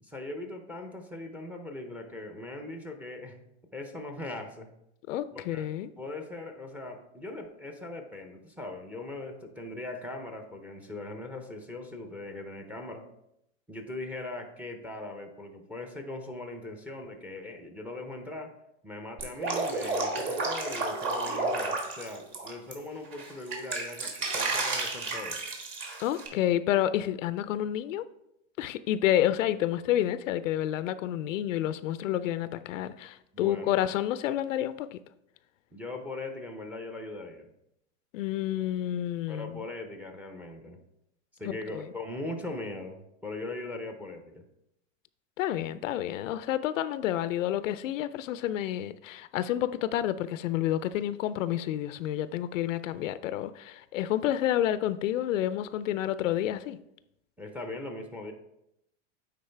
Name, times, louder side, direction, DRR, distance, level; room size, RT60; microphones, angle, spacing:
voice 1, 0.0-3.4 3.7-4.7 5.3-5.7 6.0-13.0 13.7-18.5 18.8-25.4 33.3-33.8 35.7-37.5 39.3-40.8 41.4-44.4 57.4-58.3, left 2 dB, 5° right, 0.5 m, -40 dB
voice 2, 5.1-5.9 26.0-28.0 28.6-35.0 38.1-39.6 41.4-41.9 45.4-56.8, left 12 dB, 90° left, 0.5 m, -29 dB
Drip, 19.2-22.7 23.1-26.3, right 3 dB, 30° right, 1.5 m, -31 dB
9.3 x 3.9 x 3.3 m
supercardioid pair, 135°, 37 cm